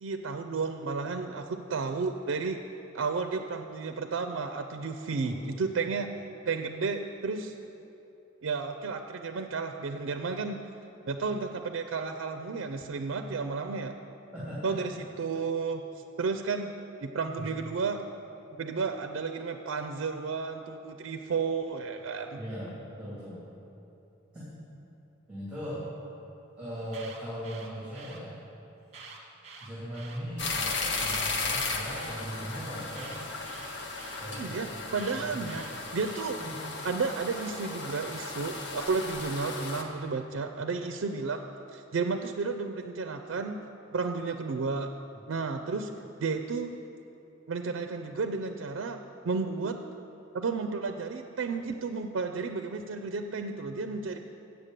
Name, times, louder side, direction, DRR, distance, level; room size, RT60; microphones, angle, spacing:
voice 1, 0.0-2.6 2.9-6.1 6.5-7.5 8.4-10.6 11.1-13.9 14.6-15.9 16.2-16.7 17.0-18.0 18.6-22.4 34.3-35.6 35.9-36.4 36.8-41.4 41.7-43.6 43.9-44.9 45.3-45.9 46.2-46.7 47.5-49.8 50.3-54.2, right 4 dB, 90° right, 6 dB, 0.4 m, -32 dB
voice 2, 14.3-14.7 17.4-17.5 22.4-23.4 24.3-24.5 25.3-25.8 26.6-28.3 29.6-33.3 34.2-35.7 36.4-36.5 45.1-45.2, equal, 5° right, -10 dB, 2.4 m, -39 dB
Alarm, 26.7-28.2 28.9-30.2 30.9-32.2 32.9-34.2 34.9-36.2, right 4 dB, 35° right, 1.2 m, -48 dB
sound 1, 30.4-39.8, left 3 dB, 60° left, 0.8 m, -35 dB
7.9 x 6.7 x 7.4 m, 2.8 s
head